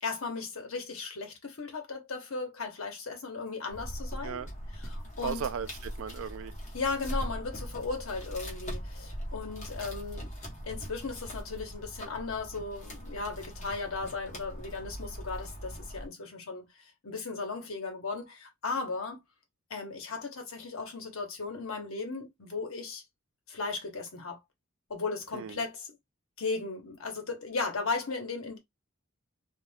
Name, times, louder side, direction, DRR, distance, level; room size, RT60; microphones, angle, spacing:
voice 1, 0.0-4.4 4.7-5.5 6.7-10.3 10.6-19.2 19.7-23.0 23.5-24.4 24.9-25.9 26.4-28.6, left 4 dB, 80° left, 1.0 m, -36 dB
sound 1, 3.7-16.1, equal, 35° left, 1.0 m, -40 dB
voice 2, 5.2-6.5 25.3-25.5, right 7 dB, 70° right, 0.4 m, -36 dB
2.4 x 2.2 x 3.3 m
head